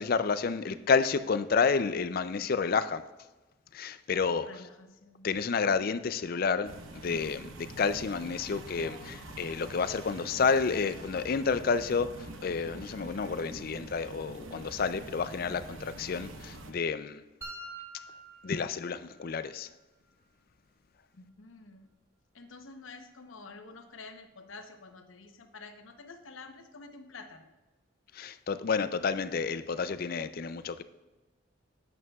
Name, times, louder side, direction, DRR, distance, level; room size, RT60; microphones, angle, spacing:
voice 1, 0.0-3.0 3.7-4.5 5.2-17.2 18.4-19.7 28.1-30.8, left 5 dB, 50° left, 12 dB, 0.4 m, -30 dB
voice 2, 4.4-5.5 21.1-21.9 22.3-27.5, left 3 dB, 85° left, 7 dB, 0.9 m, -49 dB
sound 1, 6.6-16.7, right 2 dB, 85° right, 0.9 m, -45 dB
sound 2, 17.4-19.4, right 2 dB, 15° right, 1.0 m, -46 dB
11.0 x 9.4 x 2.3 m, 1.1 s
head